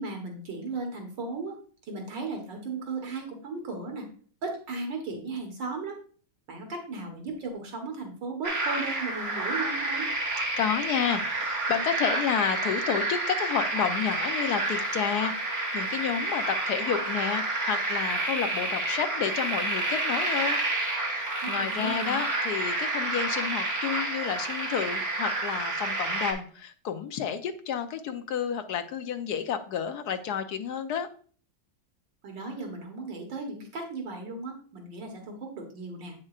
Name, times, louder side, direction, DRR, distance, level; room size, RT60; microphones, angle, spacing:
voice 1, 0.0-1.6 1.9-4.1 4.4-6.0 6.5-10.1 21.4-22.2 32.2-36.1, right 3 dB, 75° right, 2 dB, 2.0 m, -36 dB
sound 1, 8.4-26.3, right 2 dB, 35° right, 1.8 m, -29 dB
voice 2, 10.6-20.6 21.1-31.1, left 8 dB, 70° left, 8 dB, 1.1 m, -30 dB
8.5 x 6.4 x 2.4 m, 0.42 s
omnidirectional pair, 2.0 m